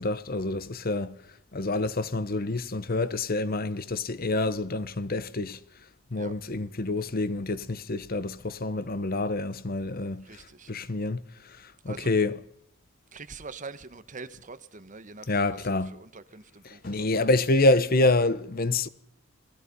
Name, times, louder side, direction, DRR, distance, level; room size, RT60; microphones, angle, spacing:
voice 1, 0.0-5.6 6.1-10.4 10.7-12.4 15.3-15.9 16.8-18.9, left 2 dB, 45° left, 1.0 m, -27 dB
voice 2, 10.2-10.7 11.8-12.1 13.1-17.3, right 4 dB, 40° right, 1.5 m, -44 dB
29.0 x 20.0 x 5.5 m
head